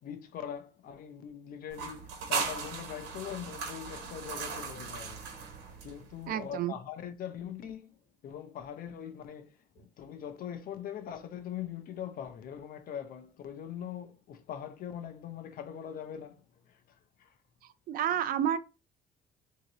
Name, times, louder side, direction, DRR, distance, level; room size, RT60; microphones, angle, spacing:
voice 1, 0.0-5.3 5.8-8.0 8.2-17.3, left 9 dB, 60° left, 0.7 m, -42 dB
sound 1, 1.7-6.3, right 5 dB, 85° right, 1.0 m, -38 dB
voice 2, 6.3-6.8 17.9-18.6, right 10 dB, 60° right, 0.5 m, -29 dB
3.8 x 2.9 x 2.9 m
cardioid pair, 110°, 17 cm